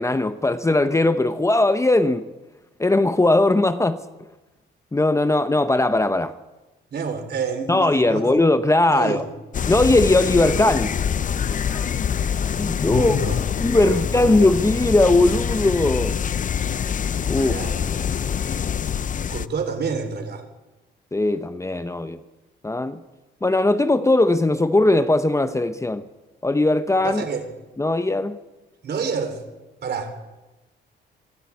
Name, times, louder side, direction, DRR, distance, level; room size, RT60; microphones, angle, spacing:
voice 1, 0.0-2.3 2.8-4.0 4.9-6.3 7.7-9.2 9.7-11.0 11.6-11.9 12.5-13.2 13.6-16.2 17.3-17.6 21.1-22.2 22.6-23.0 23.4-26.0 26.4-27.2 27.8-28.4, left 2 dB, 15° left, 0.9 m, -19 dB
voice 2, 6.9-8.4 8.9-9.2 12.9-14.5 17.4-18.0 19.3-20.5 27.0-27.5 28.8-29.4 29.8-30.1, right 5 dB, 55° right, 3.7 m, -29 dB
sound 1, 9.5-19.5, left 8 dB, 40° left, 0.6 m, -25 dB
23.5 x 13.5 x 8.5 m
cardioid pair, 90°, 20 cm